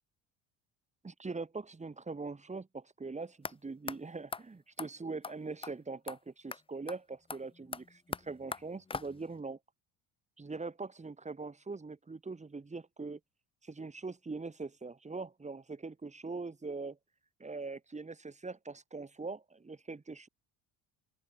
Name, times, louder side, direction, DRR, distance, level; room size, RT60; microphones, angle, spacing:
voice 1, 1.0-9.6 10.4-13.2 13.6-17.0 17.4-20.3, right 3 dB, 15° right, 1.8 m, -42 dB
sound 1, 3.4-3.5 3.9-4.0 4.3-4.4 4.8-4.9 5.2-5.3 5.6-5.7 6.1-6.2 6.5-6.6 6.9-7.0 7.3-9.4, left 4 dB, 15° left, 0.6 m, -41 dB
open air
supercardioid pair, 75°, 39 cm